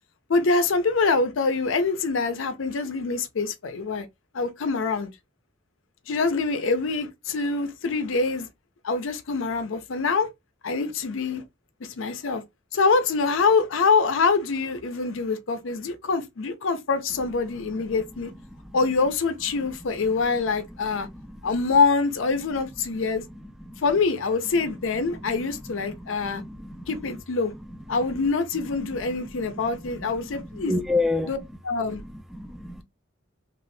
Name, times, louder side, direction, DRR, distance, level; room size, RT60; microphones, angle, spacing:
voice 1, 0.3-4.1 4.3-5.1 6.1-8.5 8.8-10.3 10.6-11.4 11.8-12.4 12.7-18.3 18.7-21.1 21.4-23.2 23.8-26.4 26.9-27.5 27.9-30.8 31.3-31.4 31.6-32.0, left 4 dB, 85° left, 0.5 m, -25 dB
voice 2, 21.1-21.4 23.7-23.8 25.2-25.4 25.9-27.1 27.9-28.0 28.8-29.0 29.3-29.4 29.8-31.3 32.0-32.8, left 2 dB, ahead, 0.3 m, -31 dB
2.7 x 2.4 x 3.2 m
head